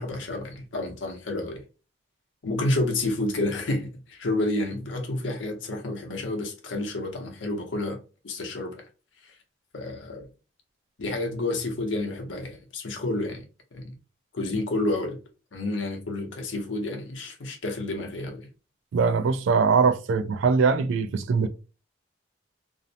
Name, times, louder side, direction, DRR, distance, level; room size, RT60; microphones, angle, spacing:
voice 1, 0.0-1.6 2.4-8.0 8.2-8.8 9.7-10.3 11.0-13.4 13.7-13.9 14.3-15.2 15.5-18.5, left 2 dB, 80° left, 0.7 m, -30 dB
voice 2, 18.9-21.5, right 5 dB, 80° right, 0.3 m, -22 dB
2.5 x 2.0 x 2.6 m
head